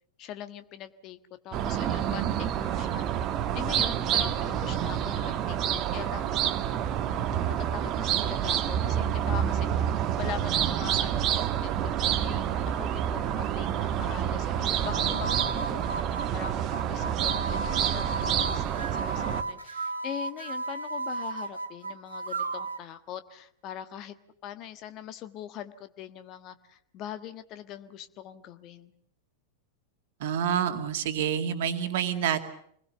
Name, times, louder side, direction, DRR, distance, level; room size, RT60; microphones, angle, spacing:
voice 1, 0.2-1.2 1.4-3.2 3.5-6.3 7.1-9.8 10.2-11.3 11.6-15.9 16.3-24.1 24.4-28.9, left 10 dB, 35° left, 11 dB, 1.4 m, -42 dB
sound 1, 1.5-19.4, right 10 dB, 35° right, 1.3 m, -28 dB
sound 2, 14.7-22.9, right 3 dB, 75° right, 0.9 m, -35 dB
voice 2, 30.2-32.4, right 8 dB, 55° right, 7 dB, 2.2 m, -28 dB
27.0 x 21.0 x 7.0 m, 0.66 s
figure-of-eight pair, 90°, 0 cm